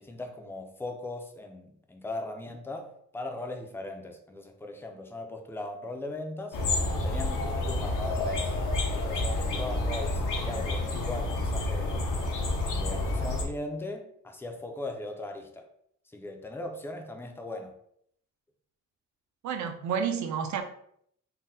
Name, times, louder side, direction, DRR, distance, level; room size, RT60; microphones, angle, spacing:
voice 1, 0.0-6.6 7.0-8.6 9.0-12.1 12.7-15.7 16.1-17.7, left 2 dB, 10° left, 0.3 m, -39 dB
sound 1, 6.5-13.4, left 2 dB, 90° left, 0.7 m, -29 dB
voice 2, 19.4-20.6, right 7 dB, 70° right, 0.5 m, -30 dB
3.8 x 2.1 x 2.6 m
cardioid pair, 135°, 31 cm